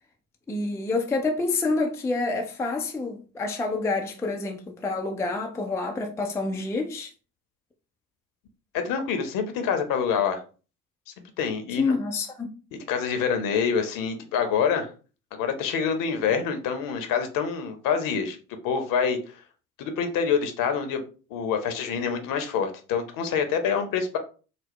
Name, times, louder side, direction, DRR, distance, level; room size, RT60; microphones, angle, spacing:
voice 1, 0.5-7.1 11.8-12.5, left 3 dB, 5° left, 0.4 m, -28 dB
voice 2, 8.7-10.4 11.4-11.9 12.9-14.9 15.3-18.4 18.6-19.2 19.8-21.0 21.3-24.2, left 6 dB, 50° left, 0.9 m, -26 dB
4.2 x 2.0 x 3.0 m
hypercardioid pair, 65°, 43 cm